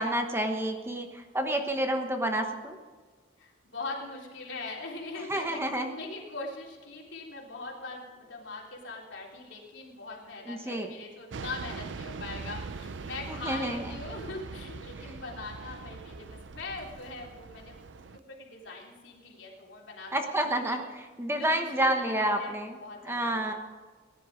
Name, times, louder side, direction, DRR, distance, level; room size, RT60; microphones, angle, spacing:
voice 1, 0.0-2.8 5.1-5.9 10.5-10.9 13.3-13.8 20.1-22.8 23.0-23.5, right 1 dB, 15° right, 5 dB, 1.1 m, -29 dB
voice 2, 3.4-17.8 18.1-20.1 20.4-20.9 21.4-23.5, left 3 dB, 70° left, -3 dB, 3.6 m, -41 dB
sound 1, 11.3-18.2, right 4 dB, 75° right, 0.5 m, -42 dB
19.0 x 10.5 x 5.0 m, 1.4 s
head